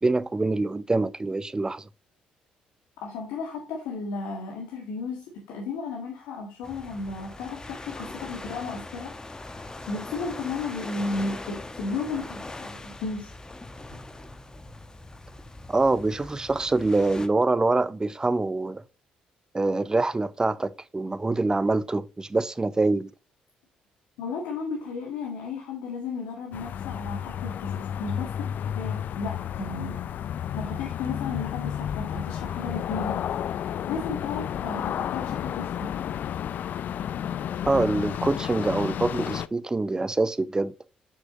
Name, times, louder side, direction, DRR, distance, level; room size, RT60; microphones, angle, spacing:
voice 1, 0.0-1.8 15.7-18.8 19.5-23.1 37.7-40.7, right 2 dB, 20° right, 0.6 m, -25 dB
voice 2, 3.0-13.3 24.2-30.0 30.5-33.2 33.5-35.9, left 4 dB, 75° left, 1.7 m, -34 dB
sound 1, 6.6-17.3, left 2 dB, 20° left, 1.1 m, -41 dB
sound 2, 26.5-39.5, left 9 dB, 60° left, 0.4 m, -31 dB
8.4 x 6.2 x 2.8 m
hypercardioid pair, 50°, 3 cm